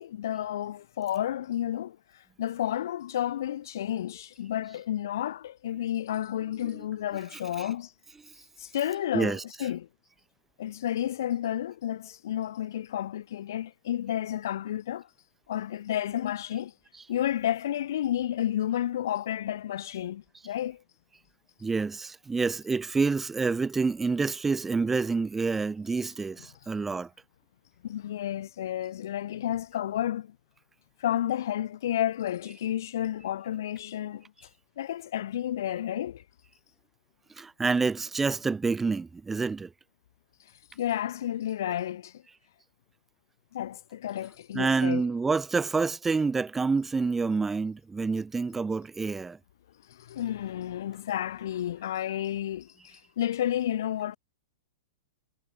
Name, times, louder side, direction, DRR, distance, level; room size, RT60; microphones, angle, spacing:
voice 1, 0.0-2.0 2.4-7.9 8.6-9.9 10.6-15.1 15.5-16.7 17.1-20.8 27.8-30.4 31.0-34.3 34.8-36.2 40.8-42.2 43.5-45.0 49.9-54.2, left 11 dB, 60° left, 0.5 m, -31 dB
voice 2, 7.3-7.7 9.1-9.4 21.6-27.1 37.4-39.7 44.5-49.4, right 4 dB, 10° right, 1.0 m, -28 dB
figure-of-eight pair, 105°, 2 cm